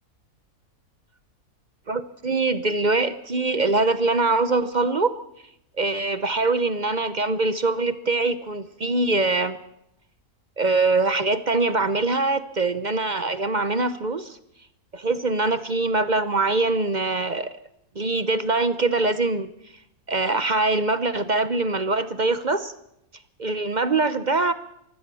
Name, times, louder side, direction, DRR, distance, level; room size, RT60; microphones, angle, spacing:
voice 1, 1.9-5.1 5.8-9.6 10.6-14.4 14.9-17.5 18.0-19.5 20.1-22.7 23.4-24.5, right 3 dB, 40° right, 13 dB, 0.7 m, -23 dB
24.0 x 16.0 x 6.9 m, 0.80 s
omnidirectional pair, 1.6 m